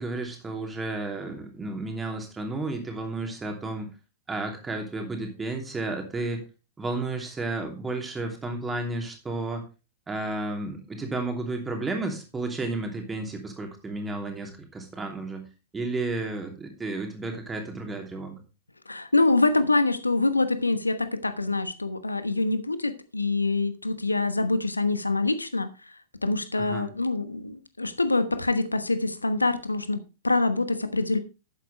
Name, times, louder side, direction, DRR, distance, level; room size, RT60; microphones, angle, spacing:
voice 1, 0.0-3.9 4.3-6.4 6.8-9.7 10.1-15.5 15.7-18.4 26.6-26.9, right 2 dB, 15° right, 2.9 m, -32 dB
voice 2, 18.9-25.7 26.2-31.2, left 2 dB, 85° left, 1.1 m, -25 dB
12.0 x 9.1 x 3.2 m
figure-of-eight pair, 100°, 0 cm